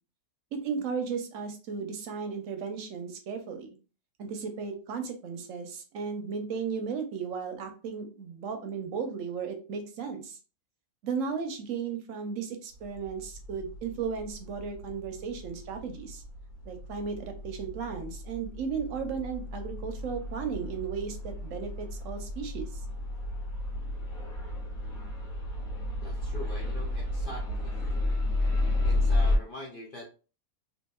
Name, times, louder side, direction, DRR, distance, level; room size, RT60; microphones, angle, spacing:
voice 1, 0.6-3.8 4.2-10.4 11.0-16.2 16.7-22.6, right 6 dB, 70° right, 6 dB, 0.9 m, -35 dB
sound 1, 12.8-29.4, left 2 dB, 75° left, 1.4 m, -32 dB
voice 2, 26.0-27.8 28.8-30.1, left 1 dB, 60° left, -2 dB, 0.5 m, -43 dB
2.7 x 2.5 x 2.3 m, 0.34 s
omnidirectional pair, 1.5 m